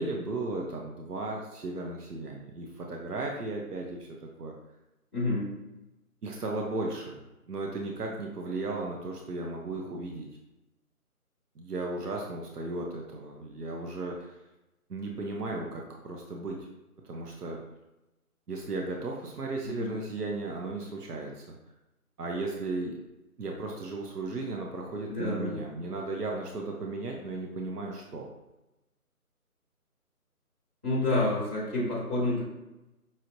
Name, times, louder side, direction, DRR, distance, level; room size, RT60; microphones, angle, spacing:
voice 1, 0.0-4.5 6.2-7.2 7.5-10.3 11.6-14.4 14.9-16.7 17.0-17.6 18.5-21.6 22.2-23.0 23.4-28.3, right 2 dB, 85° right, 0 dB, 0.8 m, -35 dB
voice 2, 5.1-5.5 19.6-19.9 25.1-25.6 30.8-32.4, left 2 dB, 10° right, -16 dB, 0.8 m, -28 dB
5.6 x 3.2 x 2.6 m, 0.99 s
figure-of-eight pair, 160°, 45 cm